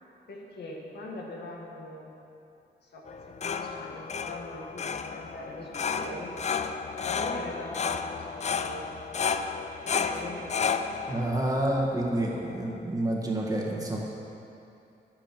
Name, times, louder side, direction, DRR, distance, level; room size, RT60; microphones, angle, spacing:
voice 1, 0.3-2.1 2.8-6.4 6.9-8.9 9.8-10.5, left 1 dB, 70° left, -2 dB, 2.0 m, -41 dB
sound 1, 3.1-12.8, left 6 dB, 40° left, 0.5 m, -33 dB
voice 2, 11.1-14.0, right 1 dB, 20° right, -2 dB, 1.7 m, -28 dB
11.5 x 8.9 x 6.1 m, 2.7 s
wide cardioid pair, 135°, 18 cm